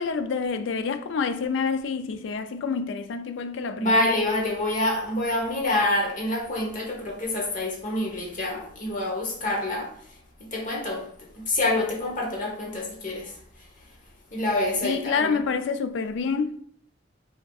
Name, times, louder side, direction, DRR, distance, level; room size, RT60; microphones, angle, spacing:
voice 1, 0.0-4.1 14.8-16.6, left 5 dB, 65° left, 0.3 m, -28 dB
voice 2, 3.7-9.9 10.4-11.0 11.3-13.3 14.3-15.4, left 1 dB, 45° left, 1.0 m, -26 dB
5.1 x 3.5 x 2.3 m
head